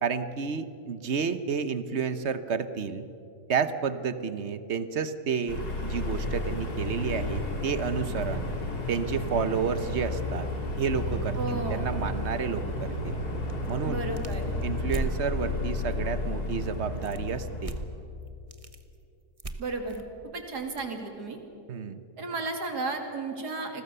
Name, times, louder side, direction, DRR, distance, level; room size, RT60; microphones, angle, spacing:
voice 1, 0.0-3.1 3.5-8.5 8.9-10.5 10.8-13.2 13.7-14.1 14.6-17.7 21.7-22.0, right 6 dB, 45° right, 12 dB, 1.1 m, -31 dB
sound 1, 5.5-17.8, left 2 dB, 65° left, 3.7 m, -32 dB
voice 2, 11.3-11.9 13.8-14.5 19.6-20.0 20.3-21.4 22.2-23.8, right 3 dB, 75° right, 4 dB, 3.1 m, -33 dB
sound 2, 13.4-15.2 17.0-17.3 17.6-18.0 18.3-18.8 19.4-20.9, right 2 dB, 25° right, 1.1 m, -36 dB
29.5 x 21.0 x 6.8 m, 2.8 s
omnidirectional pair, 1.8 m